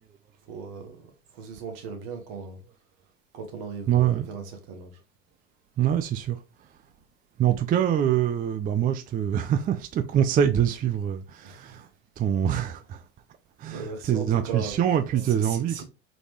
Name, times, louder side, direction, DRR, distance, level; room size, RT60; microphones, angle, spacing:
voice 1, 0.5-2.6 3.3-5.0 11.4-11.8 13.7-14.8 15.2-15.8, right 5 dB, 60° right, 1.5 m, -38 dB
voice 2, 3.9-4.3 5.8-6.4 7.4-11.8 12.2-13.0 13.6-15.8, right 9 dB, 25° right, 0.4 m, -24 dB
4.0 x 3.4 x 3.1 m
hypercardioid pair, 75°, 39 cm